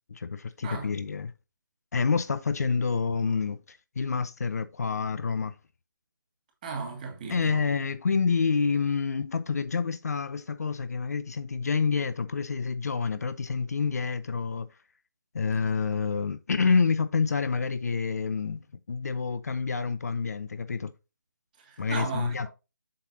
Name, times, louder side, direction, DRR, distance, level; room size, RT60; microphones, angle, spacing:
voice 1, 0.1-1.3 1.9-5.6 7.3-14.7 15.3-18.6 18.9-20.9 21.8-22.5, left 5 dB, 50° left, 0.7 m, -28 dB
voice 2, 0.6-0.9 6.6-7.6 21.6-22.5, right 4 dB, 25° right, 1.8 m, -36 dB
7.6 x 5.8 x 2.7 m
figure-of-eight pair, 165°, 11 cm